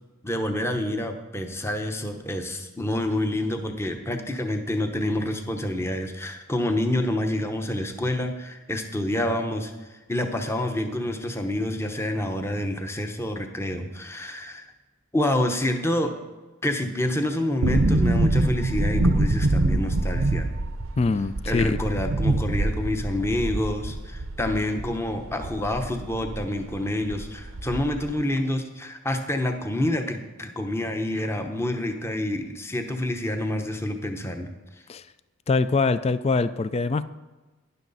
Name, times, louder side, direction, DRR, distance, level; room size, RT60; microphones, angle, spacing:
voice 1, 0.2-14.7 15.1-16.1 16.6-20.5 21.5-34.5, left 1 dB, 10° left, 0.9 m, -28 dB
sound 1, 17.6-26.4 26.7-26.8 27.1-28.1 28.4-28.5, right 2 dB, 75° right, 0.7 m, -25 dB
voice 2, 21.0-21.8 34.9-35.0 35.5-37.1, left 3 dB, 30° left, 0.3 m, -23 dB
12.5 x 10.5 x 4.1 m
head